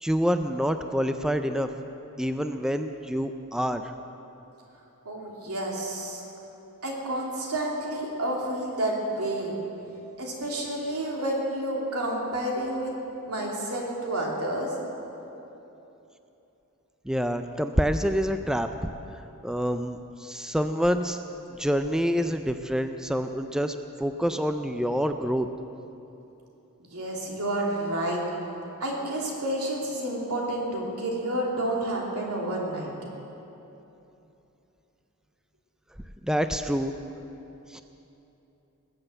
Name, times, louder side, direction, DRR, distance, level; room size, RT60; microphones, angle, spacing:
voice 1, 0.0-1.7 2.2-3.8 17.1-18.9 19.4-21.2 21.6-25.5 36.2-36.9 37.7-37.8, equal, 5° right, 8 dB, 0.4 m, -27 dB
voice 2, 5.0-6.2 6.8-9.5 10.2-12.9 13.2-14.7 26.8-28.2 28.8-32.9, right 1 dB, 85° right, -2 dB, 3.1 m, -30 dB
20.0 x 7.8 x 7.9 m, 3.0 s
head